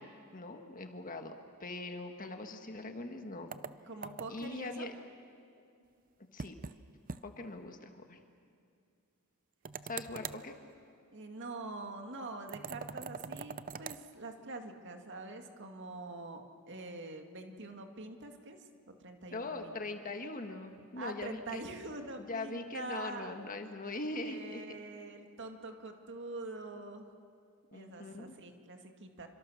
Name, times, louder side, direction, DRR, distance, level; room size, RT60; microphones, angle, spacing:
voice 1, 0.0-3.5 4.3-5.0 6.3-6.6 7.2-8.2 9.9-10.6 19.3-21.6 22.3-24.6 27.7-28.3, left 2 dB, 40° left, 6 dB, 1.5 m, -41 dB
sound 1, 3.5-4.5 6.4-6.8 7.1-7.2 7.5-7.6 9.6-10.4 12.5-14.0, right 5 dB, 40° right, 0.6 m, -43 dB
voice 2, 3.9-4.9 11.1-19.8 21.0-23.4 24.2-27.1 27.7-29.3, right 2 dB, 55° right, 4 dB, 2.2 m, -45 dB
29.0 x 25.5 x 6.5 m, 2.4 s
head